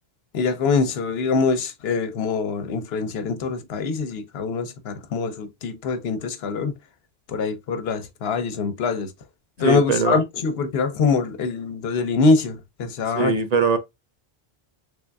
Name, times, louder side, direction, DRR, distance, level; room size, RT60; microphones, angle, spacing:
voice 1, 0.3-6.7 7.3-9.1 9.6-13.3, left 4 dB, 75° left, 0.9 m, -24 dB
voice 2, 9.6-10.2 13.1-13.8, right 5 dB, 50° right, 0.5 m, -21 dB
3.6 x 3.3 x 2.2 m
omnidirectional pair, 1.1 m